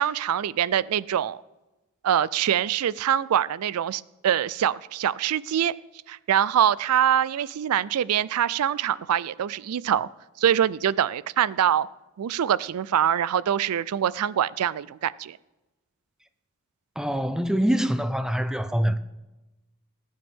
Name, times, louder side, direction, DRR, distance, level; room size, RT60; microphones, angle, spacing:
voice 1, 0.0-1.4 2.0-5.7 6.1-10.1 10.4-11.9 12.2-15.4, right 9 dB, 90° right, 0.4 m, -24 dB
voice 2, 17.0-19.0, equal, 5° right, 0.4 m, -24 dB
19.5 x 9.6 x 3.6 m
head